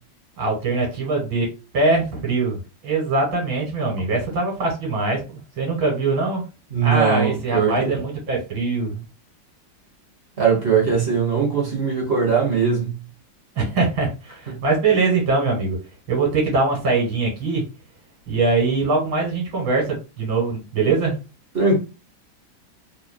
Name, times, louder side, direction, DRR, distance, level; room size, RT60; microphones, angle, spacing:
voice 1, 0.4-1.5 1.7-5.2 5.6-6.4 6.8-9.0 13.5-15.8 16.1-17.6 18.3-21.1, right 3 dB, 85° right, 2.5 m, -22 dB
voice 2, 6.7-7.9 10.4-13.0 14.5-14.6 21.5-21.8, right 5 dB, 35° right, 1.2 m, -20 dB
3.6 x 3.5 x 2.2 m
omnidirectional pair, 2.1 m